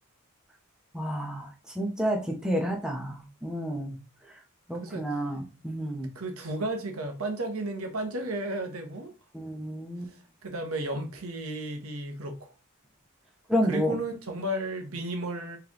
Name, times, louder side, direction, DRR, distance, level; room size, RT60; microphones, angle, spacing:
voice 1, 0.9-4.0 4.7-6.1 9.3-10.1 13.5-13.9, equal, 5° right, 0.8 m, -30 dB
voice 2, 6.1-9.1 10.1-12.4 13.6-15.6, right 1 dB, 70° right, 1.0 m, -33 dB
4.3 x 3.3 x 2.9 m
head